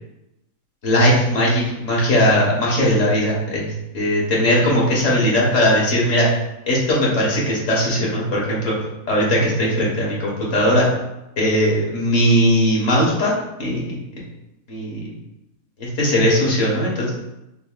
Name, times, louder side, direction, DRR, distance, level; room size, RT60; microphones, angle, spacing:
voice 1, 0.8-6.3 6.7-8.7 9.1-10.9 11.4-13.3 13.6-14.0 14.7-15.1 15.8-17.1, equal, 60° left, -4 dB, 1.7 m, -19 dB
5.5 x 3.5 x 2.3 m, 0.91 s
omnidirectional pair, 1.5 m